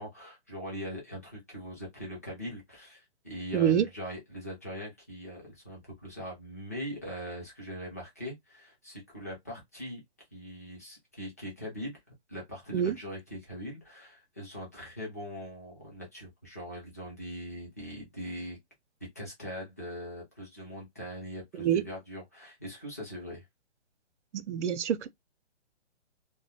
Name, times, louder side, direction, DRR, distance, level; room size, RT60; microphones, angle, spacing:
voice 1, 0.0-10.0 10.3-12.0 12.3-18.6 19.2-23.4, equal, 15° left, 0.4 m, -41 dB
voice 2, 3.5-3.9 12.7-12.9 21.6-21.8 24.3-25.1, right 9 dB, 80° right, 0.5 m, -26 dB
2.2 x 2.2 x 2.6 m
hypercardioid pair, 160°, 35 cm